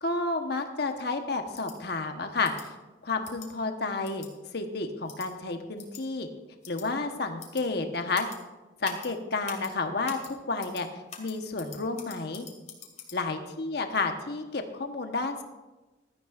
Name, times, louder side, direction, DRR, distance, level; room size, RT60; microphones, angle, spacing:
voice 1, 0.0-2.7 3.0-4.3 4.5-6.3 6.7-8.3 8.8-10.9 11.2-12.5 13.1-15.4, left 3 dB, 60° left, 5 dB, 1.2 m, -31 dB
sound 1, 1.5-1.8 2.4-2.7 3.2-3.5 4.0-4.3 5.1-5.3 5.8-6.0 6.6-6.9 7.4-7.6 8.1-8.4 8.8-9.1 9.5-9.7 10.1-10.3 10.6-10.8 11.1-13.2, left 6 dB, 40° left, 2.0 m, -43 dB
16.5 x 12.5 x 2.5 m, 1.1 s
head